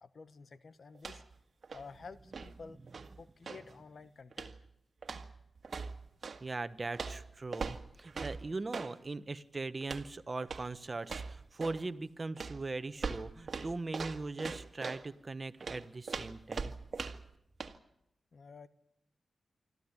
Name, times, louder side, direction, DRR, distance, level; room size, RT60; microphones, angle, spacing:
voice 1, 0.0-1.2 1.7-2.8 3.2-4.6 18.3-18.7, left 4 dB, 65° left, 13 dB, 1.2 m, -51 dB
sound 1, 0.9-1.4 1.6-3.7 4.3-4.7 5.0-6.4 6.9-9.0 9.8-10.1 10.4-10.7 11.0-11.9 12.4-15.1 15.6-17.3 17.6-17.8, right 4 dB, 60° right, 1.8 m, -41 dB
voice 2, 6.4-16.7, right 3 dB, 40° right, 12 dB, 1.2 m, -40 dB
25.0 x 14.0 x 9.8 m, 0.83 s
cardioid pair, 45°, 0 cm